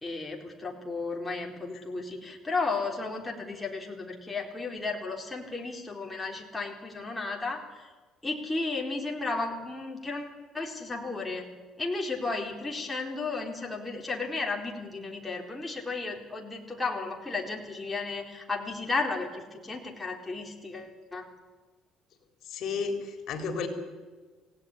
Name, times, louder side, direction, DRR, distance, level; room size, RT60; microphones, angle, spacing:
voice 1, 0.0-7.9 8.2-11.5 11.8-21.2, left 3 dB, 10° left, 0 dB, 4.0 m, -34 dB
voice 2, 22.5-23.7, left 5 dB, 60° left, 5 dB, 3.9 m, -32 dB
28.0 x 17.5 x 9.8 m, 1.4 s
cardioid pair, 120°, 0 cm